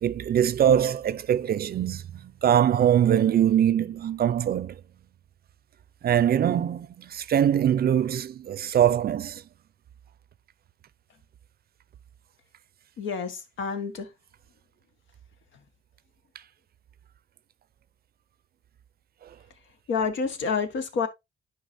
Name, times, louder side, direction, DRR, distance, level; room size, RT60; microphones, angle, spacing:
voice 1, 0.0-4.8 6.0-9.4, right 10 dB, 50° right, 0.5 m, -23 dB
voice 2, 13.0-14.1 19.9-21.1, left 5 dB, 75° left, 1.3 m, -28 dB
10.5 x 4.8 x 2.6 m
cardioid pair, 90°, 20 cm